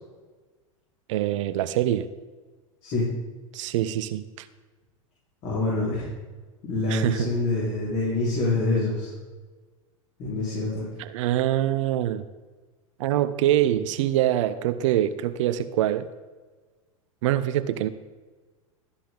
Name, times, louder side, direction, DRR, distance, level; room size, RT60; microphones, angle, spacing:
voice 1, 1.1-2.1 3.5-4.5 6.9-7.3 11.0-12.3 13.0-16.1 17.2-17.9, right 12 dB, 60° right, 11 dB, 0.6 m, -24 dB
voice 2, 5.4-6.1 6.6-9.1 10.2-10.9, left 2 dB, 45° left, -8 dB, 4.4 m, -26 dB
13.5 x 10.0 x 3.8 m, 1.3 s
hypercardioid pair, 95°, 18 cm